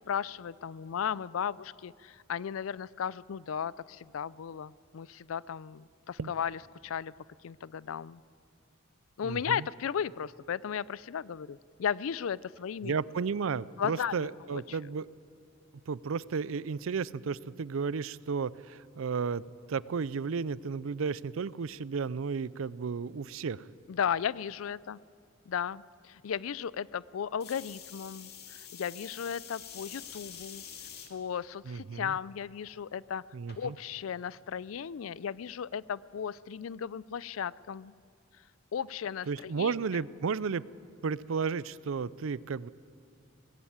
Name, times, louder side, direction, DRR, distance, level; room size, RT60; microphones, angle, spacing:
voice 1, 0.1-7.1 7.4-8.2 9.2-12.9 13.8-14.8 23.9-25.0 25.5-30.6 31.1-33.2 33.6-37.9 38.7-39.7, left 8 dB, 90° left, 22 dB, 0.4 m, -35 dB
voice 2, 9.2-9.7 12.8-15.1 15.9-23.7 31.7-32.2 33.3-33.8 39.3-40.6 41.0-42.7, right 5 dB, 80° right, 20 dB, 0.5 m, -33 dB
sound 1, 27.4-31.1 31.8-32.2 33.5-33.6, left 8 dB, 55° left, 2.0 m, -46 dB
19.0 x 15.5 x 8.8 m, 2.4 s
head